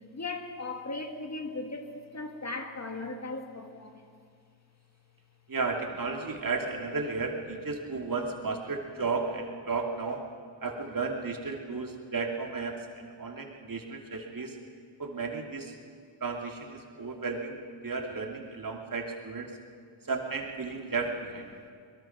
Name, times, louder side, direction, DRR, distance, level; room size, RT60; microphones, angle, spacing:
voice 1, 0.1-4.1, left 2 dB, 35° left, 4 dB, 2.0 m, -38 dB
voice 2, 5.5-10.2 10.6-14.6 15.0-15.7 16.2-19.5 20.1-21.5, right 4 dB, 45° right, 2 dB, 2.7 m, -34 dB
22.5 x 22.5 x 5.9 m, 2.2 s
cardioid pair, 90°, 46 cm